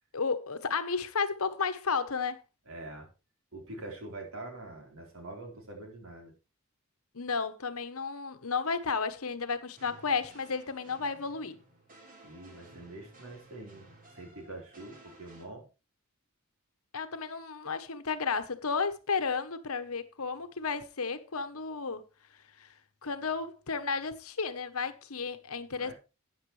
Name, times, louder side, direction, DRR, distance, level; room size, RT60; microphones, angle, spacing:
voice 1, 0.1-2.4 7.1-11.5 16.9-22.0 22.6-22.7 23.0-25.9, left 5 dB, 75° left, 1.1 m, -33 dB
voice 2, 2.7-3.1 3.5-6.3 12.2-15.7 25.7-25.9, right 2 dB, 70° right, 4.1 m, -45 dB
sound 1, 9.8-15.4, right 2 dB, 40° right, 3.1 m, -56 dB
13.5 x 9.3 x 3.3 m
head